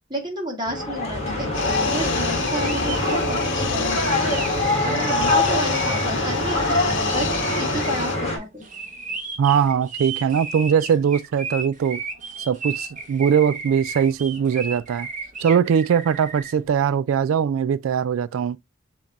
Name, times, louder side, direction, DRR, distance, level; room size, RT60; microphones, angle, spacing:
voice 1, 0.1-1.5 1.8-4.4 4.8-8.7, right 1 dB, 20° right, 1.6 m, -31 dB
sound 1, 0.7-8.4, left 1 dB, 30° left, 1.8 m, -24 dB
sound 2, 1.5-8.2, left 6 dB, 60° left, 0.8 m, -29 dB
sound 3, 2.3-16.5, right 4 dB, 40° right, 1.1 m, -35 dB
voice 2, 9.4-12.0 12.5-15.1 15.4-18.6, right 7 dB, 75° right, 0.3 m, -21 dB
7.0 x 3.0 x 2.5 m
head